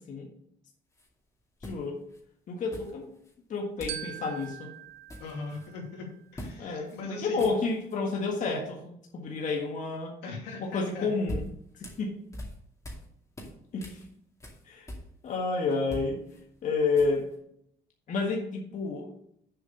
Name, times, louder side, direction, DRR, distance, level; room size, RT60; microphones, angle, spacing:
sound 1, 0.9-1.1 1.6-2.2 2.7-3.3 3.8-4.1 4.3-4.5 4.8-5.7 6.3-6.6 6.9-7.0 7.3-8.0 10.8-13.1 13.3-15.4 15.7-17.4, equal, 20° left, 2.3 m, -42 dB
voice 1, 1.6-2.0 2.5-3.1 3.5-4.7 6.6-10.1 10.6-11.4 12.0-12.1 13.7-14.0 14.7-14.9 15.2-16.2 16.6-17.3 18.1-19.1, left 4 dB, 50° left, 0 dB, 1.6 m, -30 dB
Glockenspiel, 3.9-6.4, right 12 dB, 80° right, 0.7 m, -43 dB
voice 2, 5.2-7.5 10.2-11.1, left 3 dB, 90° left, -1 dB, 2.8 m, -40 dB
7.2 x 5.0 x 6.5 m, 0.71 s
cardioid pair, 110°, 17 cm